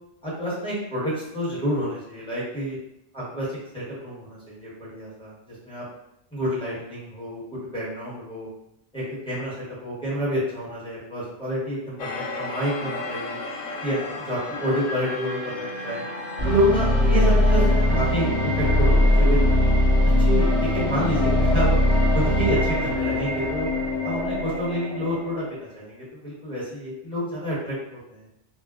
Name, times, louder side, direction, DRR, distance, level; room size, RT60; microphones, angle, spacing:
voice 1, 0.2-2.8 3.1-5.8 6.3-8.5 8.9-12.1 12.4-13.4 13.8-16.0 16.4-19.4 20.2-21.8 22.1-23.7 24.0-28.2, equal, 5° left, -9 dB, 1.0 m, -28 dB
sound 1, 12.0-17.8, left 3 dB, 85° left, 0.9 m, -34 dB
sound 2, 16.4-25.4, left 1 dB, 25° left, 1.2 m, -21 dB
2.3 x 2.1 x 3.5 m, 0.83 s
omnidirectional pair, 1.1 m